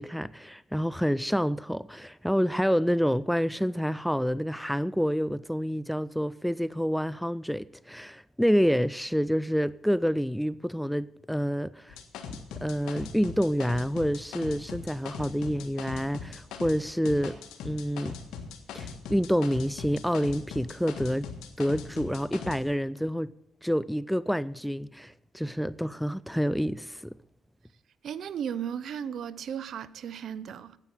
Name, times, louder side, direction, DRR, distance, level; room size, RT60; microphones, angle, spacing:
voice 1, 0.0-12.0 12.3-17.4 17.6-18.1 18.7-21.3 21.6-23.3 23.6-27.1, equal, ahead, 0.3 m, -28 dB
sound 1, 11.9-16.8 17.0-22.6, left 6 dB, 85° left, 1.6 m, -40 dB
voice 2, 28.0-30.8, right 8 dB, 65° right, 0.6 m, -35 dB
9.7 x 8.9 x 8.7 m
cardioid pair, 90°, 0 cm